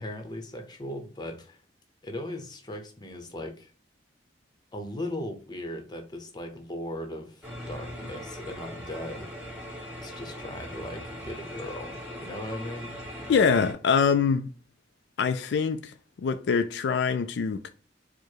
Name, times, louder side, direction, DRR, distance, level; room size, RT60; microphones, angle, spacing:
voice 1, 0.0-1.6 2.0-3.7 4.7-9.3 10.0-13.0, left 1 dB, 25° left, 0.8 m, -38 dB
sound 1, 7.4-13.7, equal, 5° right, 1.6 m, -40 dB
voice 2, 13.3-14.5 15.2-15.9 16.2-17.7, left 5 dB, 70° left, 0.3 m, -24 dB
4.6 x 2.1 x 4.6 m
head